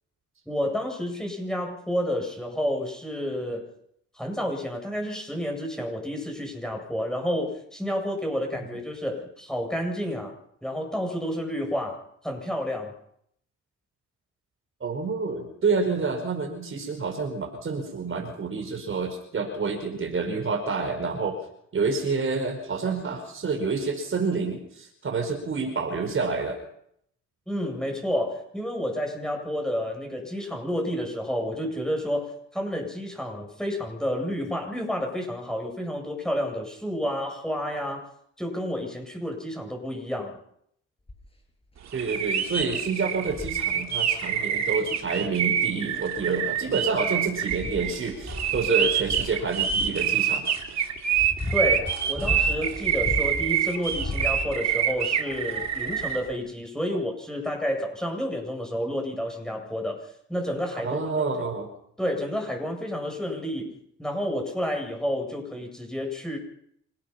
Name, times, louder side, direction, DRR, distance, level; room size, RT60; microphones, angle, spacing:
voice 1, 0.5-3.6 4.1-10.3 10.6-12.9 27.5-38.1 38.4-40.4 51.5-61.0 62.0-66.4, equal, ahead, 2 dB, 7.9 m, -30 dB
voice 2, 14.8-21.4 21.7-26.6 41.9-50.4 56.9-57.0 60.7-61.7, right 4 dB, 45° right, 4 dB, 5.1 m, -28 dB
sound 1, 41.1-41.4 42.0-42.1 42.5-42.8 43.2-43.7 45.1-45.2 46.0-46.7 47.2-50.0 50.8-53.5 53.9-54.8 55.6-55.7, left 2 dB, 20° left, 6.3 m, -35 dB
sound 2, 41.9-56.2, right 8 dB, 60° right, 3.0 m, -26 dB
27.5 x 17.5 x 5.8 m, 0.71 s
cardioid pair, 90°, 30 cm